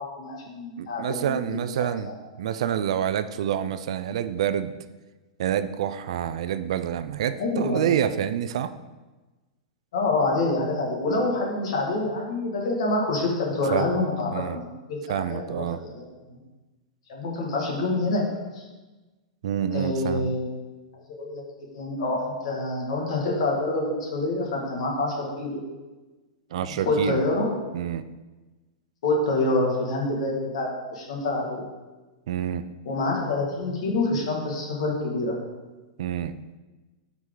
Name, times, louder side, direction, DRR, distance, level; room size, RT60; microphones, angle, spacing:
voice 1, 0.0-2.1 7.4-7.9 9.9-16.4 17.1-18.2 18.5-18.6 19.7-20.5 21.2-21.4 21.7-25.6 26.9-27.6 29.0-31.6 32.9-35.4, left 2 dB, 60° left, -1 dB, 2.1 m, -27 dB
voice 2, 0.8-2.1 2.4-4.8 5.4-8.7 13.7-13.9 14.3-14.6 15.1-15.8 19.4-20.3 26.5-27.2 27.7-28.0 32.3-32.6 36.0-36.4, right 10 dB, 65° right, 12 dB, 0.5 m, -27 dB
9.6 x 4.8 x 3.9 m, 1.2 s
supercardioid pair, 165°, 4 cm